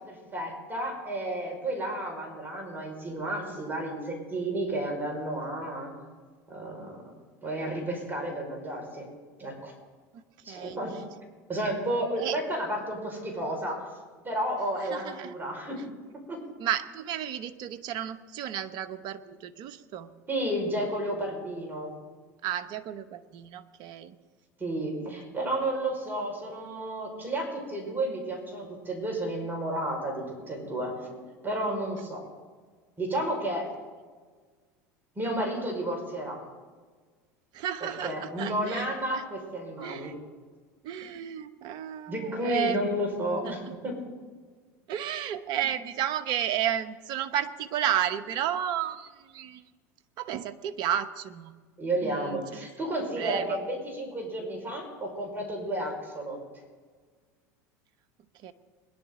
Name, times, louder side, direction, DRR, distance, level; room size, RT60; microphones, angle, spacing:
voice 1, 0.0-5.9 6.5-7.0 7.4-9.0 9.4-9.7 10.4-11.0 11.5-13.8 14.2-15.8 16.3-16.4 20.3-21.9 24.6-31.2 31.4-32.2 33.0-33.7 35.1-36.4 38.0-40.1 42.1-44.0 51.8-56.4, right 1 dB, 20° right, 0 dB, 5.2 m, -32 dB
voice 2, 10.1-10.8 12.2-12.4 14.9-15.3 16.6-20.1 22.4-24.1 25.1-25.2 37.5-39.2 39.8-40.1 40.8-42.8 43.4-43.6 44.9-49.6 50.2-51.5 52.0-52.7 53.2-53.5 58.4-58.5, right 10 dB, 55° right, 10 dB, 1.0 m, -32 dB
21.5 x 11.0 x 3.8 m, 1.5 s
hypercardioid pair, 85°, 9 cm